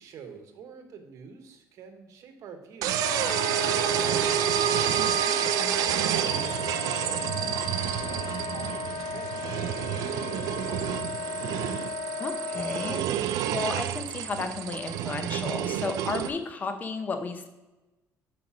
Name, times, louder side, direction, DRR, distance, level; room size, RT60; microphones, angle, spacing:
voice 1, 0.0-4.5 6.8-11.1, right 6 dB, 60° right, 5 dB, 1.0 m, -47 dB
sound 1, 2.8-16.3, right 11 dB, 75° right, 0.4 m, -29 dB
Wind instrument woodwind instrument, 3.0-13.1, left 4 dB, 90° left, 0.7 m, -35 dB
voice 2, 5.3-5.7 12.2-17.5, left 4 dB, 30° left, 7 dB, 0.6 m, -34 dB
5.7 x 5.1 x 4.7 m, 1.1 s
cardioid pair, 135°, 6 cm